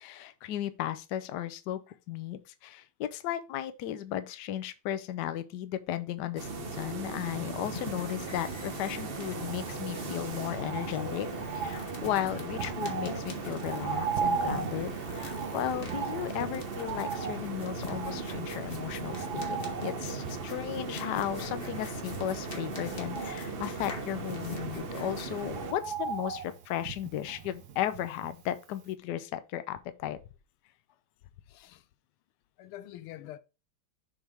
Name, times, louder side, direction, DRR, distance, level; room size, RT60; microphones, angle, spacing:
voice 1, 0.0-1.8 2.1-11.3 11.5-19.6 19.8-30.2, left 11 dB, 65° left, 1.1 m, -35 dB
sound 1, 6.4-25.7, right 3 dB, 80° right, 0.5 m, -38 dB
sound 2, 7.5-25.4, left 3 dB, 30° left, 1.2 m, -45 dB
Bird, 9.5-28.6 28.9-29.0, right 6 dB, 60° right, 1.2 m, -39 dB
voice 2, 31.5-31.8 32.6-33.4, left 13 dB, 90° left, 1.5 m, -45 dB
7.2 x 3.6 x 4.9 m
omnidirectional pair, 2.3 m